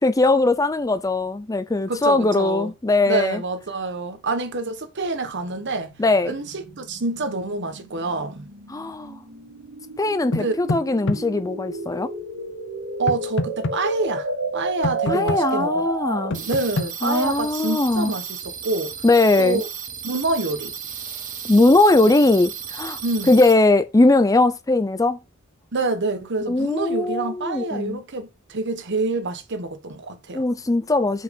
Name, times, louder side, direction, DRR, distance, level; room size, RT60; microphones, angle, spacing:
voice 1, 0.0-3.4 6.0-6.3 8.7-9.2 10.0-12.1 15.1-16.4 17.0-18.1 19.0-19.6 21.5-23.0 23.3-25.2 26.5-28.0 30.3-31.2, left 2 dB, 15° left, 0.5 m, -19 dB
voice 2, 1.9-2.7 3.1-5.9 6.3-8.5 10.4-10.5 13.0-14.3 14.5-15.7 16.5-19.0 19.4-19.7 20.0-20.7 23.0-23.3 25.7-30.4, right 3 dB, 55° right, 1.2 m, -27 dB
sound 1, 5.3-16.6, right 2 dB, 80° right, 1.8 m, -31 dB
sound 2, 10.3-11.2 13.1-13.7 14.8-15.4 16.3-16.9, left 2 dB, 60° left, 0.7 m, -25 dB
sound 3, 16.3-23.5, right 7 dB, 40° right, 1.3 m, -34 dB
6.0 x 5.1 x 5.2 m
head